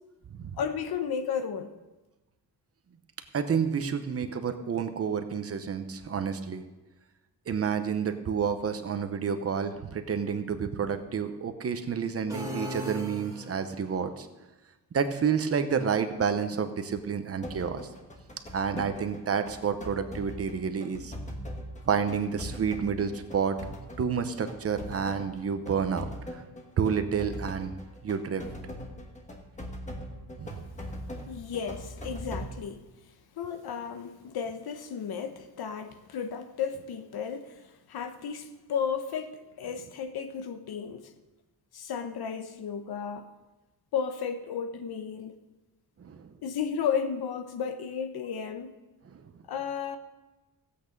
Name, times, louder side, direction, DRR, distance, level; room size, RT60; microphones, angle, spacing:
voice 1, 0.6-1.7 31.3-32.9 33.4-41.1 41.7-43.3 43.9-45.4 46.4-48.7 49.5-50.0, left 7 dB, 85° left, 1.1 m, -33 dB
voice 2, 3.3-6.6 7.5-14.3 14.9-17.9 18.5-21.1 21.8-23.6 24.0-26.4 26.8-27.7 28.0-28.4 30.4-30.6 46.0-46.3 49.0-49.2, right 6 dB, 40° right, 0.9 m, -29 dB
sound 1, 12.3-13.9, equal, 10° right, 1.8 m, -37 dB
sound 2, 17.4-32.5, equal, 20° left, 1.2 m, -41 dB
15.5 x 8.6 x 5.3 m
wide cardioid pair, 180°, 37 cm